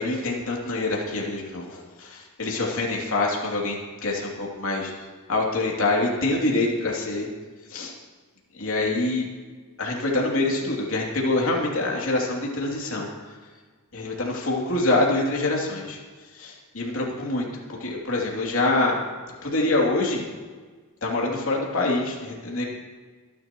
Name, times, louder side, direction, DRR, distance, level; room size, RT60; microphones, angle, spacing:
voice 1, 0.0-4.9 5.3-7.3 7.7-7.9 8.5-9.3 9.8-13.3 13.9-16.0 16.3-17.5 17.8-19.0 19.4-20.2 21.0-22.6, left 2 dB, 65° left, -2 dB, 3.0 m, -25 dB
25.5 x 11.5 x 3.1 m, 1.4 s
head